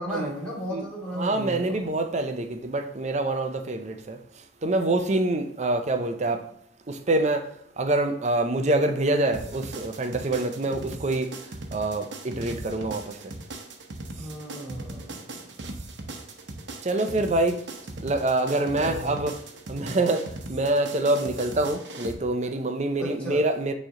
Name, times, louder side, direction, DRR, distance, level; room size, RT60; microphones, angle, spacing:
voice 1, 0.0-1.9 14.2-15.2 18.6-19.2 23.0-23.4, equal, 5° left, 2.7 m, -35 dB
voice 2, 1.1-4.2 4.6-6.4 6.9-7.5 7.8-11.3 11.7-13.3 16.8-17.6 18.0-19.4 19.7-23.7, right 2 dB, 40° right, 0.6 m, -26 dB
sound 1, 9.3-22.1, right 2 dB, 85° right, 0.9 m, -39 dB
9.0 x 3.2 x 3.8 m
head